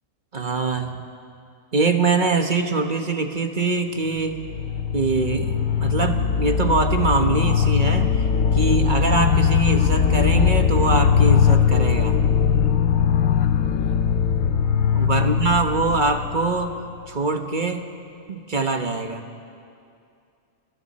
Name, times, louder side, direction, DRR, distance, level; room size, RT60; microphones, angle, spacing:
voice 1, 0.3-0.9 1.7-4.4 4.9-5.5 5.8-8.2 8.5-12.2 14.9-16.8 17.1-17.8 18.3-19.2, right 3 dB, 35° right, 5 dB, 1.3 m, -23 dB
sound 1, 4.2-17.0, left 7 dB, 75° left, 1.2 m, -20 dB
29.5 x 29.0 x 4.3 m, 2.5 s
omnidirectional pair, 1.5 m